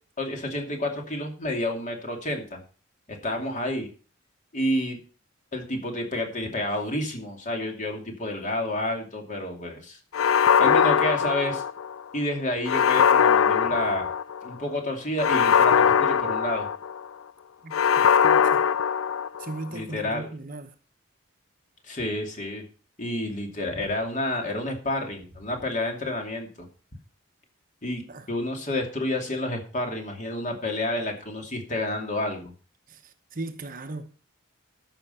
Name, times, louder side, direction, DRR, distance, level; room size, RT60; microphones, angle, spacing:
voice 1, 0.2-2.6 3.1-3.9 4.5-5.0 5.5-10.0 10.6-11.6 12.1-14.1 14.4-16.7 19.7-20.3 21.8-22.6 23.0-26.5 27.8-28.0 28.3-32.5, left 1 dB, 35° left, 2.5 m, -29 dB
sound 1, 10.1-12.0 12.7-14.5 15.2-17.1 17.7-19.6, left 7 dB, 85° left, 0.4 m, -21 dB
voice 2, 17.6-18.6 19.4-20.7 28.1-28.2 32.9-34.1, right 2 dB, 40° right, 0.9 m, -38 dB
13.5 x 5.9 x 5.6 m
head